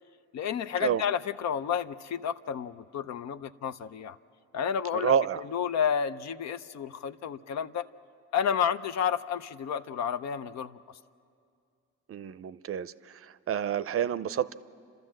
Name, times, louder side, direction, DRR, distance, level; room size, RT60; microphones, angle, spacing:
voice 1, 0.3-4.2 4.5-7.9 8.3-10.8, left 8 dB, 65° left, 12 dB, 0.6 m, -31 dB
voice 2, 4.9-5.4 12.1-12.9 13.5-14.5, right 8 dB, 50° right, 15 dB, 0.6 m, -28 dB
29.5 x 13.5 x 7.5 m, 2.4 s
cardioid pair, 90°, 30 cm